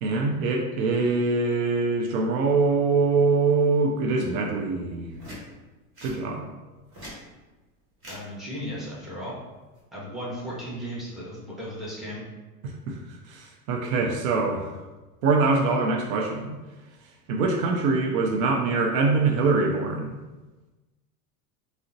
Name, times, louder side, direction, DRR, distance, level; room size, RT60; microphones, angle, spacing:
voice 1, 0.0-5.1 6.0-6.5 12.6-13.0 13.3-14.7 15.2-16.6 17.3-20.1, right 3 dB, 60° right, 1 dB, 0.5 m, -24 dB
sound 1, 5.1-5.4 5.9-6.2 6.7-7.2 8.0-8.2 9.5-9.8, equal, 25° right, 1.3 m, -41 dB
voice 2, 8.1-9.3 9.9-12.2, equal, ahead, -7 dB, 0.9 m, -35 dB
3.5 x 2.1 x 2.6 m, 1.2 s
hypercardioid pair, 110°, 47 cm